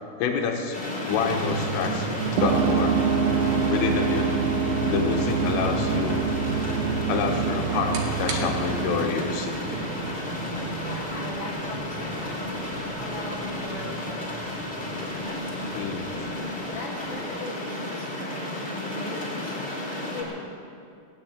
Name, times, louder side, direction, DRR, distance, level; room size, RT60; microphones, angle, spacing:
voice 1, 0.2-0.8 1.1-3.0 3.7-4.3 4.9-6.3 7.1-9.5 15.8-16.0, left 6 dB, 75° left, 2 dB, 3.9 m, -27 dB
sound 1, 0.7-20.2, left 1 dB, 15° left, 2.2 m, -33 dB
sound 2, 1.2-17.2, right 4 dB, 60° right, 2.7 m, -33 dB
sound 3, 2.4-10.5, right 6 dB, 85° right, 3.1 m, -27 dB
voice 2, 10.7-12.4 12.7-14.3 14.8-15.7 16.7-20.4, left 2 dB, 50° left, -7 dB, 2.6 m, -40 dB
17.0 x 9.0 x 9.0 m, 2.4 s
omnidirectional pair, 6.0 m